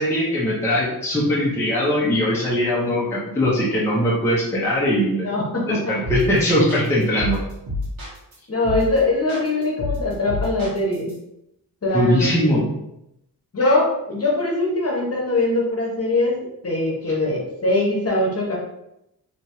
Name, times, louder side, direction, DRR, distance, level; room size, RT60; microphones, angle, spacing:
voice 1, 0.0-5.3 5.7-7.4 11.9-12.7, equal, 5° left, -7 dB, 0.7 m, -20 dB
voice 2, 5.2-5.6 8.5-11.1 11.8-12.3 13.5-18.6, left 2 dB, 40° left, -3 dB, 1.0 m, -22 dB
sound 1, 6.0-6.4 6.7-8.3 8.6-9.0 9.3-11.1, left 2 dB, 60° right, 1.5 m, -28 dB
3.4 x 2.9 x 3.0 m, 0.83 s
wide cardioid pair, 180°, 38 cm